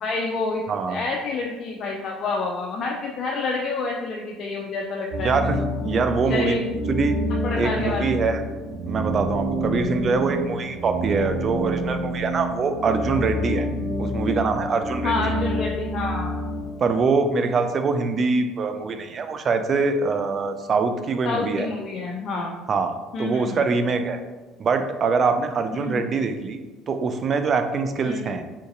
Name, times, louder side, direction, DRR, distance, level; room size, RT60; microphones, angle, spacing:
voice 1, 0.0-0.6 0.9-5.3 6.3-6.6 7.4-8.2 15.0-16.4 21.2-22.5 23.1-23.6 25.7-26.1 28.0-28.3, left 3 dB, 50° left, 0 dB, 0.4 m, -28 dB
voice 2, 0.7-1.0 5.2-5.6 5.8-6.6 6.9-7.2 7.6-8.4 8.9-13.7 14.0-15.3 16.8-21.7 22.7-22.9 23.2-24.2 24.6-26.6 26.9-28.4, right 4 dB, 45° right, 8 dB, 0.3 m, -23 dB
sound 1, 5.1-16.9, equal, 85° right, 1.0 m, -28 dB
3.8 x 2.6 x 2.5 m, 1.2 s
hypercardioid pair, 75°, 0 cm